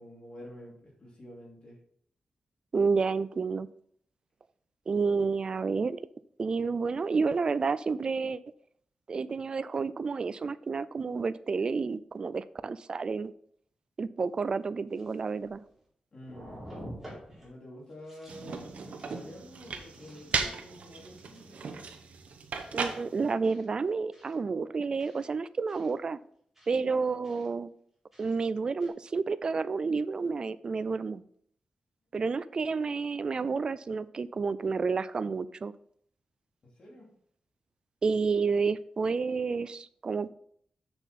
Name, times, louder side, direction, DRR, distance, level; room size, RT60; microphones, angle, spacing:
voice 1, 0.0-1.8 16.1-16.6 17.4-21.8 36.6-37.1, left 1 dB, 45° left, -3 dB, 2.8 m, -48 dB
voice 2, 2.7-3.7 4.9-6.0 6.4-8.4 9.1-13.3 14.0-15.6 22.7-26.2 26.7-27.7 28.2-31.2 32.1-35.7 38.0-40.3, right 4 dB, 40° right, 16 dB, 0.4 m, -30 dB
sound 1, 14.3-14.4 14.9-15.9 16.2-17.5 17.9-18.6 19.0-19.2 19.6-20.6 21.2-21.5 22.5-22.8 23.4-23.7 24.1-24.3 25.0-25.2 25.7-25.9 26.5-26.8 27.2-27.5 28.1-28.3 28.8-28.9, equal, 10° right, 3.9 m, -49 dB
sound 2, 18.3-23.3, right 5 dB, 70° right, 1.0 m, -37 dB
7.4 x 6.8 x 4.2 m, 0.63 s
wide cardioid pair, 160°, 2 cm